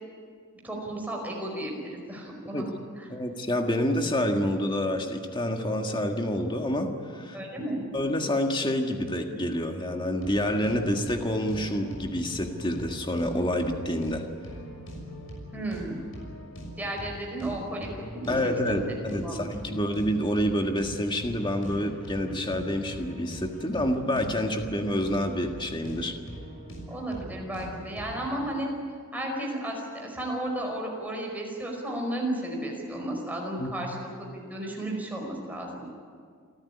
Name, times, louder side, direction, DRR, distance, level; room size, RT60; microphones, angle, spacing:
voice 1, 0.6-2.7 2.9-3.1 7.3-7.8 15.5-16.0 16.8-19.0 19.2-19.8 26.9-28.7 29.1-35.8, right 1 dB, 10° right, -1 dB, 5.0 m, -34 dB
voice 2, 3.1-7.4 7.9-14.3 18.3-26.1 33.6-33.7, equal, 20° left, 4 dB, 1.7 m, -28 dB
sound 1, 10.2-28.4, equal, 70° left, 6.2 m, -42 dB
29.0 x 14.0 x 10.0 m, 2.1 s
head